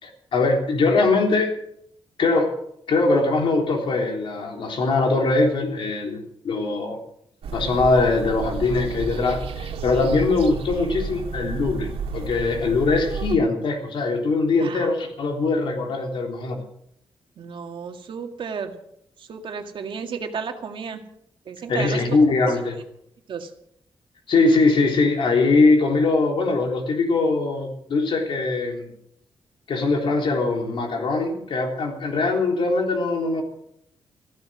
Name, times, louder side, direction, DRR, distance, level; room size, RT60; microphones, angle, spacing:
voice 1, 0.0-1.5 2.2-2.5 2.9-7.0 7.5-16.6 21.7-22.8 24.3-28.9 29.7-33.4, left 3 dB, 65° left, 2 dB, 3.5 m, -21 dB
sound 1, 7.4-13.4, right 5 dB, 85° right, 1.9 m, -31 dB
voice 2, 14.6-14.9 17.4-18.8 19.2-21.0 21.5-22.0 23.3-23.5, right 6 dB, 65° right, 4 dB, 2.0 m, -33 dB
15.0 x 14.0 x 6.3 m, 0.73 s
wide cardioid pair, 170°, 9 cm